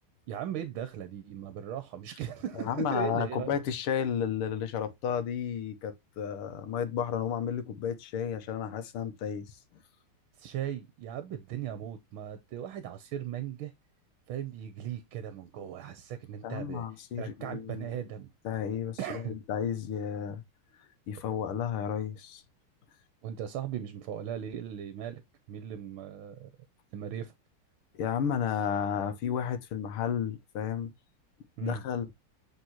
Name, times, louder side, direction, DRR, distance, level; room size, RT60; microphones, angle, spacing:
voice 1, 0.3-3.5 10.3-13.7 14.3-16.9 17.2-18.3 19.0-19.3 23.2-25.2 25.5-26.5 26.9-27.3 31.6-31.8, right 10 dB, 75° right, 1.6 m, -38 dB
voice 2, 2.5-9.6 16.4-17.9 18.4-20.4 21.1-22.4 27.9-30.9 31.6-32.1, left 8 dB, 85° left, 1.9 m, -32 dB
8.1 x 4.3 x 3.0 m
omnidirectional pair, 2.4 m